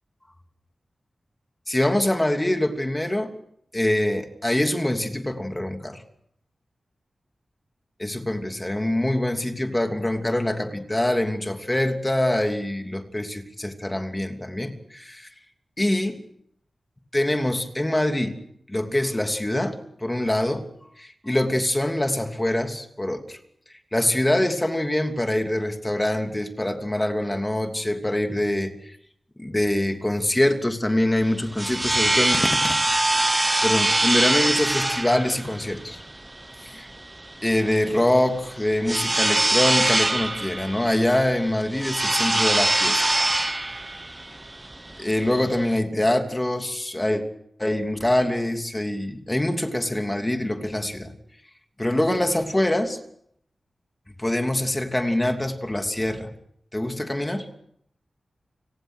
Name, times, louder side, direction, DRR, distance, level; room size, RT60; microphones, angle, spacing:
voice 1, 1.7-3.3 3.7-6.0 8.0-15.3 15.8-16.2 17.1-18.3 18.7-20.6 21.0-23.4 23.7-28.9 29.4-32.8 33.6-36.0 36.6-36.9 37.4-43.0 45.0-47.2 47.6-51.1 51.8-53.0 54.2-56.3 56.7-57.5, left 1 dB, 20° left, 5 dB, 2.9 m, -24 dB
sound 1, 31.2-45.8, right 2 dB, 25° right, 0.9 m, -24 dB
29.5 x 18.0 x 6.5 m, 0.71 s
cardioid pair, 60°, 0 cm